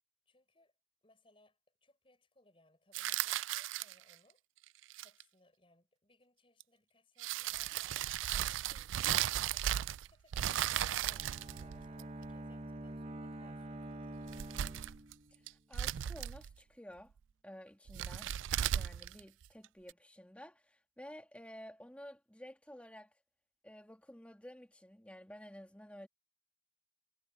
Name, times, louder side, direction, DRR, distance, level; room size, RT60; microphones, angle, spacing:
voice 1, 0.3-0.7 1.0-4.4 5.0-8.1 8.7-14.7, left 1 dB, 30° left, 5.6 m, -68 dB
sound 1, 2.9-4.1 4.8-5.2 6.6-6.7 7.2-10.1 10.3-12.2 14.2-15.1 15.5-16.5 17.9-19.9, right 11 dB, 85° right, 0.3 m, -36 dB
Bowed string instrument, 10.8-15.5, right 1 dB, 30° right, 1.0 m, -47 dB
voice 2, 15.7-17.1 17.4-18.3 18.7-23.1 23.6-26.1, equal, 5° left, 2.2 m, -52 dB
head